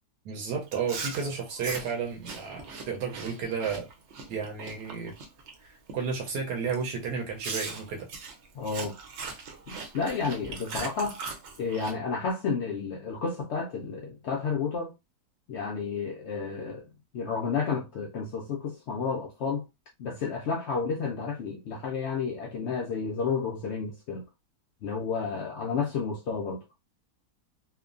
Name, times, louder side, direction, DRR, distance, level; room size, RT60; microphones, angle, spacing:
voice 1, 0.2-3.9 4.3-5.1 5.6-8.1, right 5 dB, 85° right, 1.2 m, -32 dB
Chewing mastication, 0.7-5.5 5.9-6.2 6.7-6.8 7.4-11.9, right 4 dB, 60° right, 0.7 m, -40 dB
voice 2, 8.5-9.0 9.7-11.2 11.6-14.9 15.5-16.9 17.1-19.6 20.0-24.2 24.8-26.6, left 5 dB, 80° left, 0.6 m, -31 dB
3.0 x 2.1 x 2.4 m
omnidirectional pair, 1.7 m